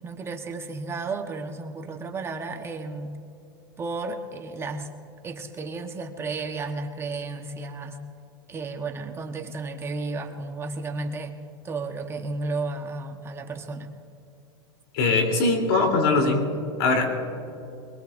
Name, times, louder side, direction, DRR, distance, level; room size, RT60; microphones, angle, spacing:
voice 1, 0.0-3.2 3.8-4.9 5.2-8.0 8.5-11.4 11.6-13.9, right 3 dB, 20° right, 4 dB, 1.2 m, -33 dB
voice 2, 14.9-16.5 16.8-17.2, left 3 dB, 65° left, 3 dB, 3.5 m, -21 dB
24.5 x 22.0 x 2.6 m, 2.7 s
supercardioid pair, 125°, 13 cm